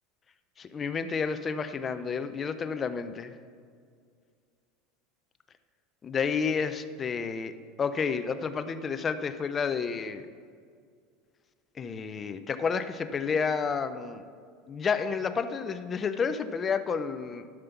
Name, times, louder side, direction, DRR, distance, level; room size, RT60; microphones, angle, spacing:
voice 1, 0.6-3.3 6.0-7.5 7.8-10.3 11.8-14.3 14.7-17.5, left 5 dB, 25° left, 10 dB, 0.5 m, -30 dB
12.0 x 5.4 x 5.9 m, 2.1 s
supercardioid pair, 145°, 0 cm